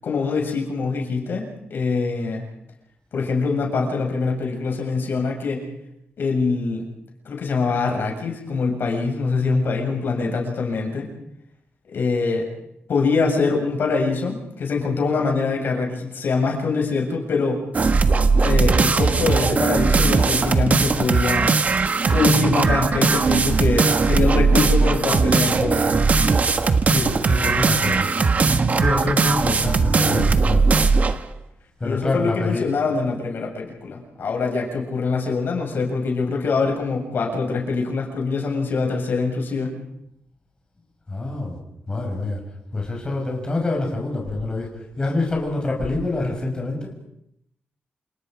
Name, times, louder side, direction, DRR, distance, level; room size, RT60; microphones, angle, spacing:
voice 1, 0.0-2.5 3.1-5.6 6.2-6.8 7.3-11.1 11.9-12.5 12.9-17.6 18.4-21.5 22.1-25.8 31.8-39.7, left 4 dB, 65° left, 1 dB, 7.4 m, -24 dB
sound 1, 17.7-31.2, right 4 dB, 40° right, 1.5 m, -19 dB
voice 2, 26.9-28.3 28.8-30.7 31.8-32.7 41.1-41.6 41.9-42.4 42.7-44.7 45.0-46.9, left 2 dB, 20° left, 0 dB, 6.0 m, -26 dB
29.0 x 28.5 x 5.2 m, 0.76 s
wide cardioid pair, 150°, 4 cm